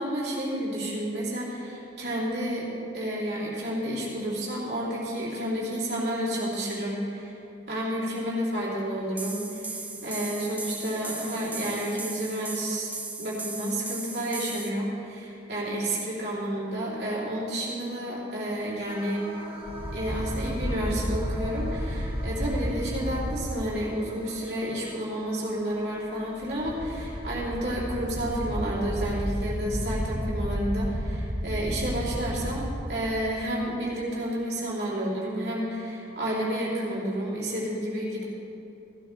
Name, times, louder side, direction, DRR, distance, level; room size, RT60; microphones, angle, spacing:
voice 1, 0.0-2.7 2.9-7.4 7.7-12.9 13.2-19.3 19.9-38.2, right 1 dB, 65° right, -6 dB, 3.2 m, -30 dB
sound 1, 9.2-14.7, right 3 dB, 10° right, 0.4 m, -37 dB
sound 2, 18.9-29.2, equal, 30° right, 1.3 m, -45 dB
sound 3, 19.6-23.5 26.3-33.6, equal, 60° left, 1.6 m, -32 dB
15.0 x 12.5 x 3.3 m, 2.8 s
head